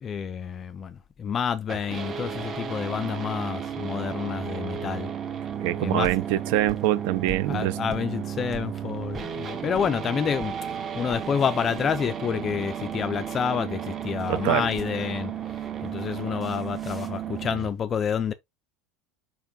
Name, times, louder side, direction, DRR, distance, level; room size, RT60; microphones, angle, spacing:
voice 1, 0.0-5.1 5.8-6.1 7.5-10.5 11.0-18.3, left 7 dB, 25° left, 0.4 m, -29 dB
sound 1, 1.7-17.7, right 8 dB, 25° right, 0.9 m, -34 dB
sound 2, 5.5-10.0 10.4-10.6 11.0-12.5 14.0-15.2 16.4-17.3, right 3 dB, 5° right, 1.2 m, -45 dB
voice 2, 5.6-7.8 14.3-14.6, right 14 dB, 60° right, 0.6 m, -24 dB
5.2 x 5.0 x 3.6 m
cardioid pair, 165°, 0 cm